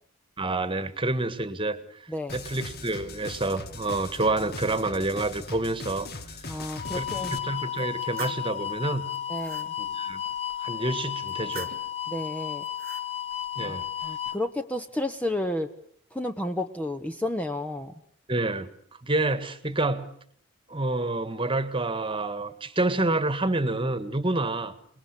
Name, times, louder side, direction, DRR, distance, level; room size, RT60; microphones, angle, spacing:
voice 1, 0.4-2.0 2.3-6.1 6.9-9.1 9.8-10.2 10.6-11.7 13.5-13.9 18.3-18.7 19.0-20.1 20.7-24.7, right 2 dB, 25° right, 13 dB, 1.7 m, -28 dB
sound 1, 2.3-7.4, left 3 dB, 45° left, 2.0 m, -40 dB
voice 2, 6.5-7.4 9.3-9.7 12.1-12.6 13.6-15.7 16.1-17.9, left 1 dB, 5° left, 7 dB, 1.0 m, -31 dB
sound 2, 6.8-14.4, left 10 dB, 30° left, 1.2 m, -33 dB
sound 3, 7.8-8.5 9.0-9.7 11.3-12.0 12.6-13.1, right 9 dB, 40° right, 1.5 m, -44 dB
28.5 x 20.5 x 8.4 m, 0.66 s
head